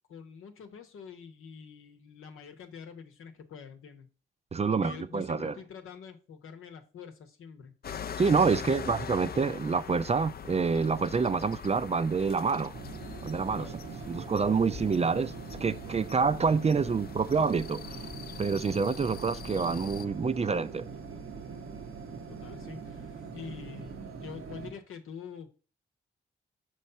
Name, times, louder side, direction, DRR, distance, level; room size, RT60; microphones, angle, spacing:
voice 1, 0.1-4.1 4.7-7.7 8.5-8.8 13.5-13.8 22.3-25.6, left 6 dB, 85° left, 0.9 m, -46 dB
voice 2, 4.5-5.6 8.2-12.7 13.2-13.7 14.1-15.3 15.6-18.1 18.4-20.8, right 5 dB, 30° right, 0.4 m, -27 dB
sound 1, 7.8-20.0, left 7 dB, 45° left, 0.4 m, -43 dB
sound 2, 12.7-24.7, right 5 dB, 80° right, 1.0 m, -42 dB
5.6 x 3.1 x 5.5 m
cardioid pair, 55°, 21 cm